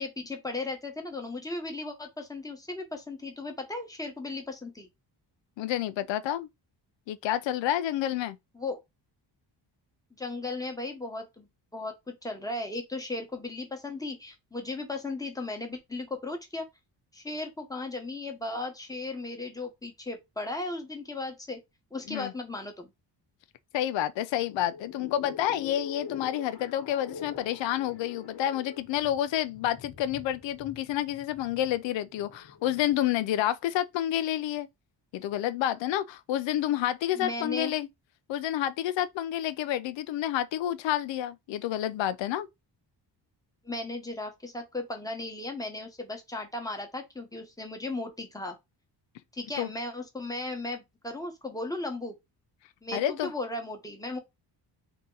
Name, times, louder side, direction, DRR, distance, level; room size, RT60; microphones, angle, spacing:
voice 1, 0.0-4.9 8.5-8.8 10.2-16.7 17.1-21.6 21.9-22.9 37.1-37.7 43.6-48.6 49.3-52.2 52.8-54.2, left 2 dB, 10° left, 1.0 m, -36 dB
voice 2, 5.6-6.5 7.1-8.4 22.1-22.3 23.7-34.7 35.1-37.9 38.3-42.5 49.6-49.7 52.9-53.3, left 12 dB, 85° left, 0.5 m, -29 dB
sound 1, 24.4-33.1, left 6 dB, 65° left, 1.0 m, -44 dB
3.7 x 2.9 x 3.8 m
wide cardioid pair, 145°, 43 cm